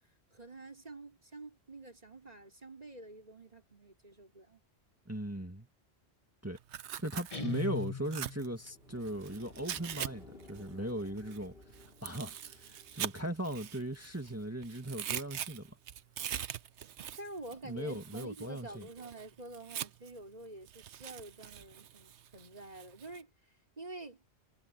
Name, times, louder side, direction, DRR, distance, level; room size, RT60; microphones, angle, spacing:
voice 1, 0.3-4.6 17.2-23.3 23.8-24.2, right 2 dB, 35° right, 4.4 m, -48 dB
voice 2, 5.1-5.7 6.4-6.6 7.0-11.7 12.0-15.8 17.6-18.9, right 1 dB, 15° right, 2.0 m, -38 dB
Tearing, 6.6-10.1 10.4-14.3 14.6-20.2 20.7-23.2, right 10 dB, 80° right, 1.0 m, -43 dB
Guitar, 7.3-8.6, left 5 dB, 30° left, 1.7 m, -38 dB
sound 1, 8.3-15.6 16.6-16.7, left 3 dB, 55° left, 3.3 m, -57 dB
omnidirectional pair, 1.2 m